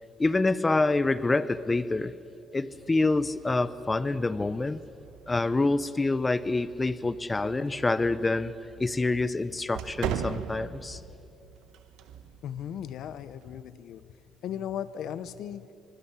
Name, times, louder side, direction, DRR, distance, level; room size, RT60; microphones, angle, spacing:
voice 1, 0.2-2.1 2.5-4.8 5.3-8.5 8.8-11.0, left 3 dB, 20° left, 15 dB, 0.9 m, -26 dB
sound 1, 2.7-13.6, right 9 dB, 85° right, 1.2 m, -42 dB
voice 2, 12.4-14.2 14.4-15.7, left 9 dB, 70° left, 15 dB, 1.0 m, -37 dB
24.5 x 21.5 x 7.4 m, 2.7 s
cardioid pair, 110°, 0 cm